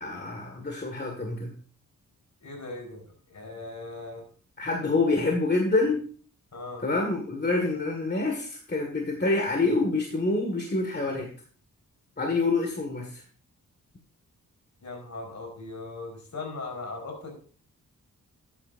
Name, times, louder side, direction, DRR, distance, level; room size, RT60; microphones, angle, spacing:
voice 1, 0.0-1.5 4.6-6.0 6.8-11.3 12.2-13.2, left 3 dB, 30° left, 3 dB, 1.9 m, -27 dB
voice 2, 2.4-3.0 3.3-4.2 6.5-6.8 14.8-17.3, left 3 dB, 55° left, 2 dB, 4.7 m, -38 dB
12.0 x 8.9 x 2.6 m, 0.43 s
cardioid pair, 65°, 34 cm